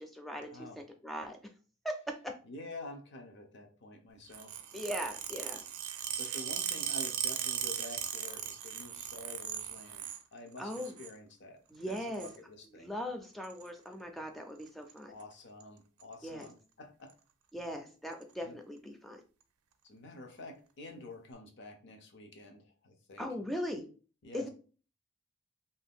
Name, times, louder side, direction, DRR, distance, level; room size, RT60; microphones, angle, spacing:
voice 1, 0.0-0.5 0.8-1.4 1.8-2.3 4.7-5.6 10.6-10.9 11.7-12.3 12.8-15.1 16.2-16.5 17.5-19.2 23.2-23.8 24.3-24.5, equal, ahead, 4 dB, 0.3 m, -39 dB
voice 2, 0.5-0.8 2.4-4.8 6.2-10.0 10.3-11.6 11.9-12.9 15.1-17.1 18.4-18.6 19.8-23.3 24.2-24.5, left 2 dB, 55° left, 5 dB, 0.6 m, -48 dB
sound 1, 4.3-10.2 10.6-11.1 11.9-12.4 13.4-13.7 14.6-14.9 15.2-15.3 15.6-15.7 16.0-16.5 17.1-17.2 18.1-18.2, right 9 dB, 90° right, 0.4 m, -38 dB
2.7 x 2.2 x 3.5 m, 0.37 s
head